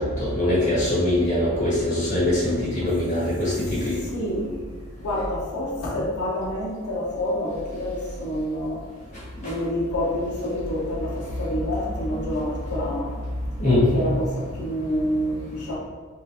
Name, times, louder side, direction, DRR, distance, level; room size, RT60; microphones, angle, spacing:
voice 1, 0.0-4.0 13.6-14.1, left 1 dB, 35° left, -10 dB, 1.4 m, -22 dB
voice 2, 4.0-4.5 5.0-8.8 9.4-13.2 13.9-15.8, left 1 dB, 85° left, -5 dB, 0.7 m, -28 dB
3.7 x 2.4 x 2.7 m, 1.5 s
head